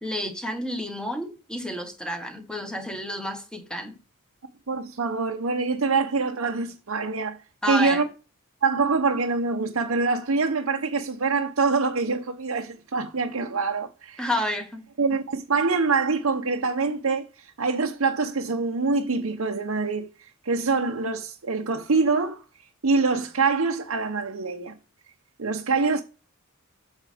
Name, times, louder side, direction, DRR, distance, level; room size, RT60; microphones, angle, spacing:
voice 1, 0.0-4.0 7.6-8.0 14.2-14.8, equal, 5° left, 1.4 m, -30 dB
voice 2, 4.7-7.4 7.6-8.0 8.6-14.3 15.0-22.4 22.8-24.7 25.4-26.0, right 4 dB, 75° right, 0.8 m, -25 dB
8.4 x 6.4 x 3.5 m
head